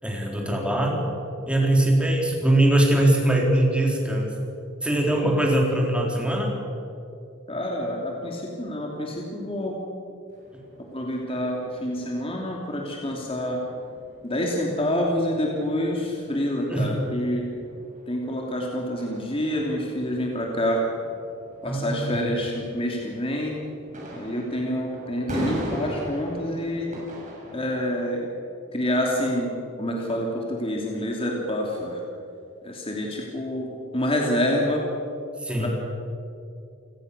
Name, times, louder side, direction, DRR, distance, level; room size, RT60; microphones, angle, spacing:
voice 1, 0.0-1.1 1.5-4.4 4.8-6.5 16.7-16.9 21.6-22.1 35.4-35.7, right 1 dB, 5° right, -1 dB, 4.0 m, -22 dB
voice 2, 7.5-9.7 10.9-13.6 14.2-17.5 18.1-20.8 21.6-23.6 24.1-26.9 27.5-28.3 28.7-29.5 29.8-32.0 32.6-34.8 35.6-35.7, left 1 dB, 25° left, -1 dB, 2.9 m, -27 dB
sound 1, 10.3-28.1, right 1 dB, 35° right, 6.9 m, -40 dB
28.5 x 18.5 x 6.9 m, 2.6 s
head